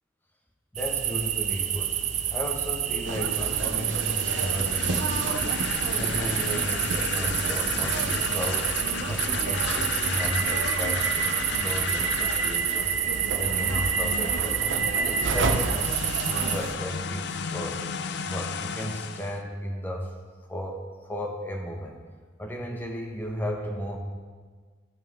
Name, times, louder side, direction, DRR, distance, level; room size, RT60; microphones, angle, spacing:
voice 1, 0.7-2.0 2.3-5.5 5.9-8.7 9.1-14.6 15.0-15.9 16.2-17.9 18.2-20.1 20.5-22.0 22.4-24.0, equal, 10° left, 1 dB, 1.1 m, -34 dB
sound 1, 0.8-16.6, right 10 dB, 35° right, 0.5 m, -29 dB
sound 2, 3.0-16.7, right 3 dB, 70° right, 0.7 m, -31 dB
sound 3, 4.1-13.0 15.1-19.4, left 6 dB, 60° left, 0.4 m, -34 dB
15.0 x 6.2 x 3.7 m, 1.5 s
head